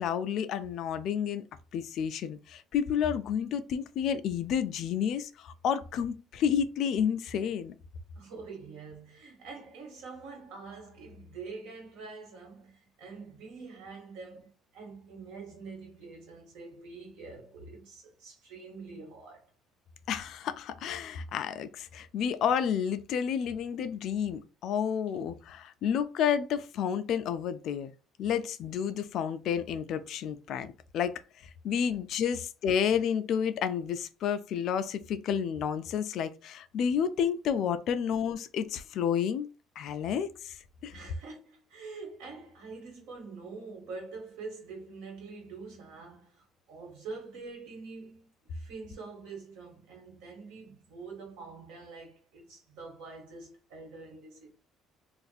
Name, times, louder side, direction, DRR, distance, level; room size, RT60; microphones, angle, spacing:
voice 1, 0.0-1.4 1.7-7.7 20.1-27.9 28.2-31.2 31.6-39.5 39.8-40.6 40.8-40.9, left 8 dB, 55° left, 0.4 m, -30 dB
voice 2, 8.1-19.5 40.9-54.6, right 4 dB, 85° right, 1.6 m, -45 dB
2.5 x 2.5 x 4.0 m
cardioid pair, 160°, 0 cm